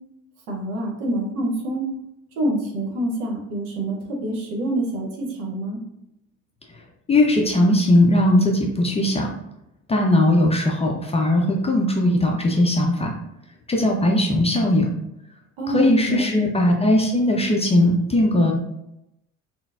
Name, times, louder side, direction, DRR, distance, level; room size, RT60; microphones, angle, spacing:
voice 1, 0.5-1.9 2.4-5.8 15.6-16.5, right 1 dB, 70° right, 0 dB, 0.8 m, -27 dB
voice 2, 7.1-9.3 9.9-13.1 13.7-14.9 15.7-18.5, left 1 dB, 15° left, 0 dB, 0.4 m, -19 dB
3.8 x 2.0 x 2.4 m, 0.84 s
figure-of-eight pair, 55°, 41 cm